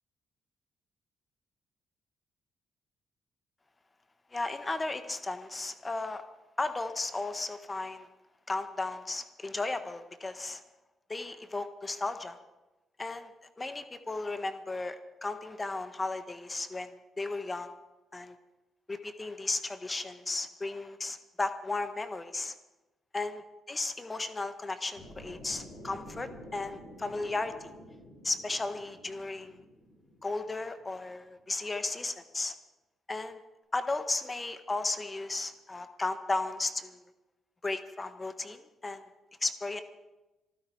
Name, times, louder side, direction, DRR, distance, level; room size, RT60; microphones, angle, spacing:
voice 1, 4.3-6.2 6.6-8.1 8.5-10.6 11.1-12.4 13.0-13.3 13.6-17.7 18.1-18.3 18.9-22.5 23.1-23.4 23.7-27.7 28.2-29.6 30.2-32.5 33.1-33.4 33.7-37.0 37.6-39.0 39.4-39.8, left 2 dB, 25° left, 10 dB, 1.5 m, -35 dB
sound 1, 24.9-31.0, left 1 dB, 70° left, 5.8 m, -50 dB
26.0 x 10.0 x 4.8 m, 1.1 s
hypercardioid pair, 45°, 0 cm